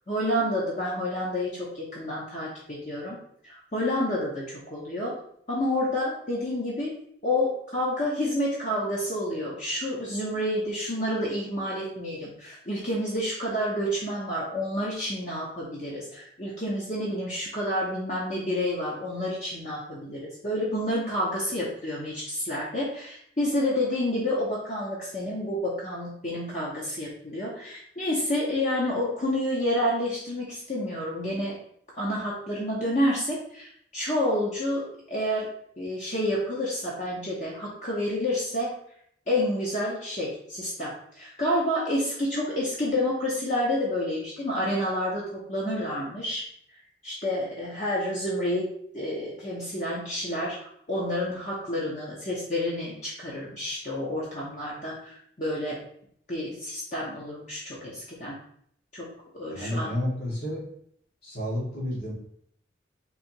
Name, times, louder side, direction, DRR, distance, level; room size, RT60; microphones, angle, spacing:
voice 1, 0.1-3.2 3.4-5.1 5.5-6.9 7.2-31.6 31.9-35.5 35.8-38.7 39.3-46.4 47.0-48.7 48.9-55.8 56.3-58.4 58.9-59.1 59.4-59.9, left 1 dB, 40° left, -5 dB, 0.9 m, -29 dB
voice 2, 59.5-60.7 61.2-62.1, left 1 dB, 60° left, -5 dB, 1.9 m, -30 dB
4.1 x 2.9 x 4.4 m, 0.67 s
head